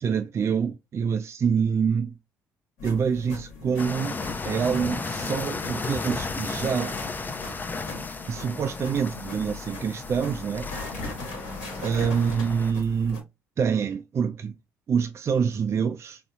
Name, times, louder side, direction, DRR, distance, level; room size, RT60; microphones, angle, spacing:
voice 1, 0.0-2.1 2.8-4.2 4.4-7.0 8.3-10.7 11.8-13.2 13.6-14.5 14.9-16.2, right 6 dB, 40° right, 0.4 m, -26 dB
sound 1, 2.8-13.2, left 2 dB, 75° left, 1.0 m, -40 dB
sound 2, 3.8-12.7, left 4 dB, 25° left, 0.5 m, -34 dB
4.0 x 2.0 x 2.4 m
hypercardioid pair, 50°, 7 cm